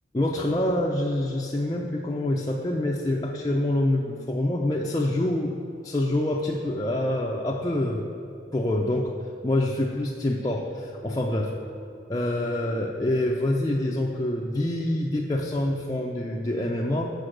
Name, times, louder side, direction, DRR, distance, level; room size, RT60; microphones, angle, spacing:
voice 1, 0.1-8.1 8.5-9.1 9.4-17.1, left 1 dB, 20° left, -2 dB, 0.4 m, -26 dB
6.6 x 6.2 x 6.4 m, 2.7 s
head